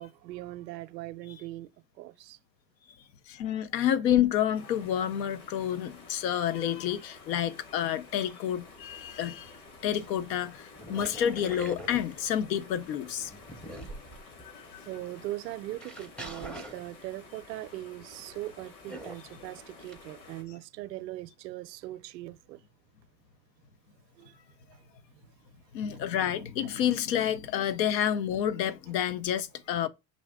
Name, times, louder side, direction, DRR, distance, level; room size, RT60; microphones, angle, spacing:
voice 1, 0.0-1.7 2.0-2.4 14.9-22.6 24.2-25.5, right 16 dB, 80° right, 0.6 m, -41 dB
voice 2, 3.3-9.5 9.8-13.3 14.5-14.9 25.7-29.9, left 10 dB, 85° left, 0.7 m, -29 dB
sound 1, 4.5-20.4, left 3 dB, 40° left, 1.4 m, -51 dB
sound 2, 9.0-9.1 9.5-10.2 10.8-12.7 13.1-14.5 15.1-15.2 15.8-17.3 18.9-19.4 19.8-20.0, right 1 dB, ahead, 0.5 m, -43 dB
6.1 x 2.6 x 3.4 m
hypercardioid pair, 105°, 49 cm